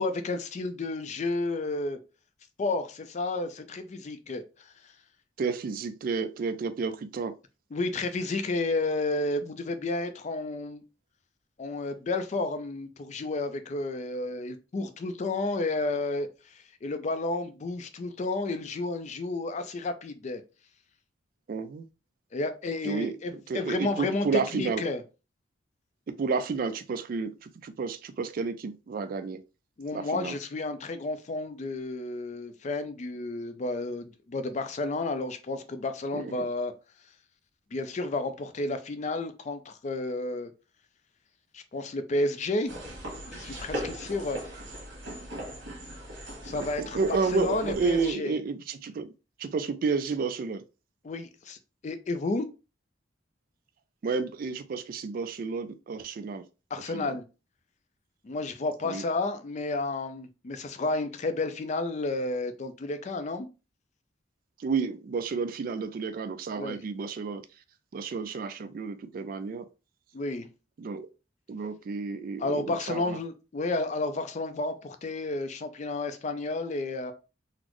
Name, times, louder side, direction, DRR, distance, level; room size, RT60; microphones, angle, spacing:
voice 1, 0.0-2.0 2.6-4.4 7.7-10.8 11.6-16.3 16.8-20.4 22.3-24.3 24.5-25.0 29.8-36.7 37.7-40.5 41.5-42.7 43.3-44.4 46.4-47.0 47.3-48.4 51.0-51.6 51.8-52.5 56.7-57.2 58.2-63.5 66.6-66.8 70.1-70.5 72.4-77.1, left 2 dB, 40° left, 0.4 m, -31 dB
voice 2, 5.4-7.4 21.5-21.9 22.8-23.2 23.5-24.8 26.1-29.4 29.9-30.4 36.1-36.5 46.6-49.1 49.4-50.6 54.0-56.4 56.9-57.2 58.8-59.0 64.6-67.5 67.9-69.7 70.8-71.1 71.5-73.2, right 4 dB, 50° right, 0.3 m, -31 dB
sound 1, 42.7-48.1, equal, 80° right, 1.4 m, -39 dB
4.0 x 2.0 x 2.9 m
head